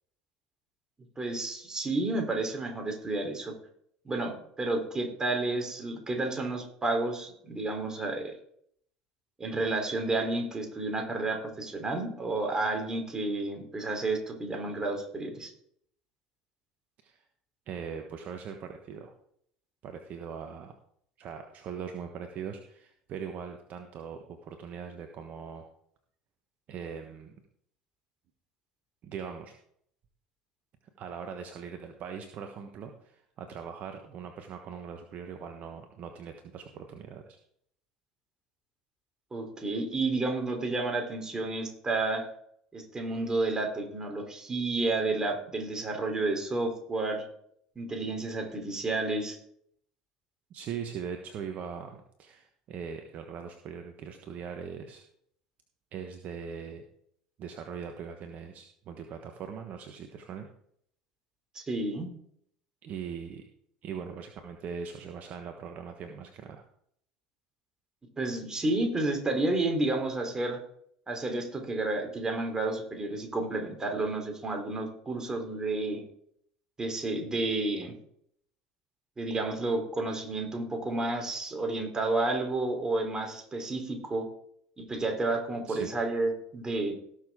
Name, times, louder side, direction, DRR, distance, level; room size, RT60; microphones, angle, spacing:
voice 1, 1.2-3.5 4.1-8.3 9.4-15.5 39.3-42.2 42.7-47.2 47.8-49.4 61.6-62.1 68.2-70.6 71.1-76.0 76.8-78.0 79.2-84.3 84.8-86.9, right 2 dB, 20° right, 3 dB, 3.7 m, -31 dB
voice 2, 17.7-19.1 19.8-20.7 21.2-25.7 26.7-27.4 29.0-29.5 31.0-37.4 48.5-48.6 50.5-55.0 55.9-56.8 57.4-60.5 62.8-63.4 63.8-66.6 85.7-85.9, right 7 dB, 50° right, 5 dB, 1.2 m, -41 dB
18.0 x 6.7 x 3.7 m, 0.67 s
hypercardioid pair, 70°, 3 cm